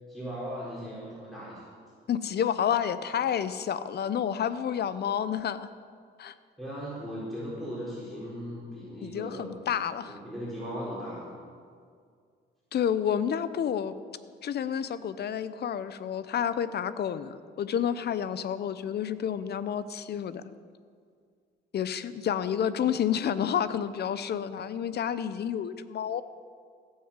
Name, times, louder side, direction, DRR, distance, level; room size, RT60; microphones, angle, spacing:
voice 1, 0.1-1.6 6.6-9.8 10.1-11.3, equal, ahead, -8 dB, 4.1 m, -38 dB
voice 2, 2.1-5.7 6.2-6.3 9.0-10.2 12.7-13.9 14.4-20.5 21.7-26.2, left 8 dB, 55° left, 14 dB, 0.7 m, -30 dB
16.5 x 6.4 x 7.4 m, 2.1 s
cardioid pair, 90°, 20 cm